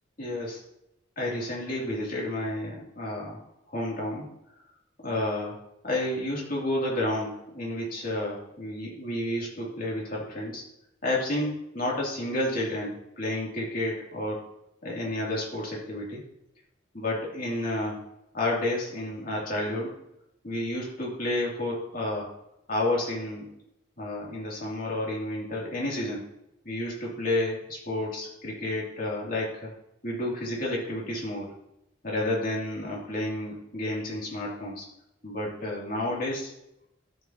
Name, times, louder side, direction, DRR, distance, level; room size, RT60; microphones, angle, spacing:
voice 1, 0.2-0.6 1.2-3.4 3.7-4.3 5.0-5.6 5.8-10.6 11.0-14.4 14.8-16.2 16.9-18.0 18.3-20.0 20.4-22.3 22.7-23.5 24.0-26.2 26.6-29.7 30.0-31.5 32.0-34.9 35.2-36.5, left 1 dB, 50° left, -4 dB, 2.8 m, -30 dB
13.0 x 5.5 x 2.9 m, 0.82 s
head